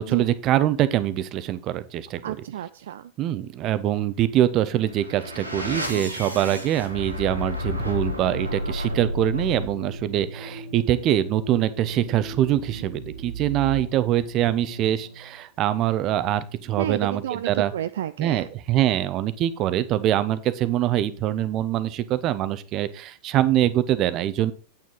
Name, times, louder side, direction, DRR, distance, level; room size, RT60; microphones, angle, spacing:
voice 1, 0.0-2.3 3.2-17.7 18.2-24.5, right 12 dB, 35° right, 14 dB, 0.8 m, -24 dB
voice 2, 2.2-3.1 16.8-18.4, right 10 dB, 60° right, 11 dB, 0.4 m, -31 dB
sound 1, 4.7-15.3, equal, 85° right, 2.1 m, -33 dB
8.8 x 8.6 x 3.9 m, 0.38 s
figure-of-eight pair, 90°, 0 cm